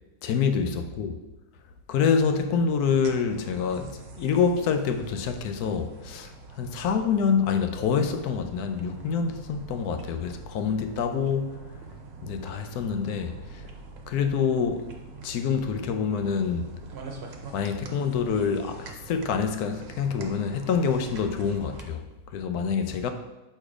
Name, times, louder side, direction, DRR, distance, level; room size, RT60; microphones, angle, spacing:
voice 1, 0.2-1.1 1.9-11.6 12.2-13.3 14.1-14.8 15.2-16.7 17.5-22.0 22.3-23.1, left 6 dB, 90° left, 1.1 m, -26 dB
sound 1, 2.9-21.8, right 3 dB, 55° right, 0.8 m, -44 dB
6.4 x 3.2 x 4.9 m
omnidirectional pair, 1.6 m